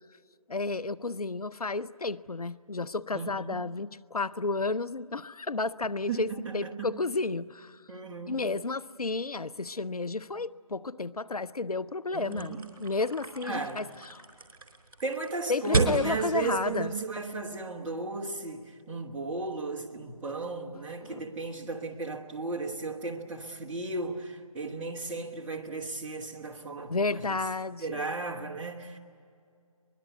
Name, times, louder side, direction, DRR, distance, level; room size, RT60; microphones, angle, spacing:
voice 1, 0.5-7.8 8.3-14.2 15.5-16.9 21.0-21.2 26.9-28.1, left 3 dB, 90° left, 0.7 m, -32 dB
voice 2, 3.1-3.6 6.1-6.2 6.4-6.9 7.9-8.4 12.1-12.6 13.4-13.8 15.0-27.4 27.8-29.0, right 3 dB, 5° right, 1.2 m, -35 dB
sound 1, 12.3-17.6, right 3 dB, 40° right, 4.5 m, -33 dB
24.0 x 22.0 x 9.4 m
figure-of-eight pair, 160°, 19 cm